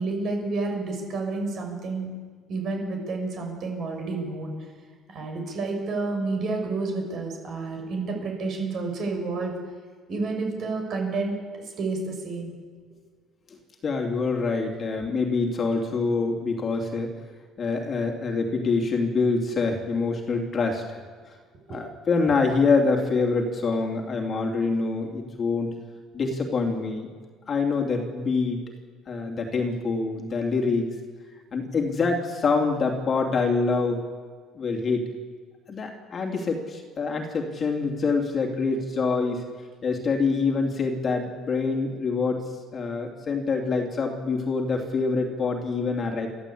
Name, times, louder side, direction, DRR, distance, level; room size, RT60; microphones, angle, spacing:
voice 1, 0.0-2.1 2.5-4.5 5.1-9.5 10.1-11.3 11.8-12.5 21.7-21.8, right 3 dB, 45° right, 3 dB, 6.6 m, -29 dB
voice 2, 13.5-17.1 17.6-21.4 21.7-25.7 26.1-27.1 27.5-28.6 29.1-30.9 31.5-34.0 34.5-35.1 35.7-39.4 39.8-42.4 42.7-46.3, left 4 dB, 30° left, 2 dB, 3.0 m, -25 dB
29.5 x 14.0 x 8.6 m, 1.6 s
cardioid pair, 145°, 0 cm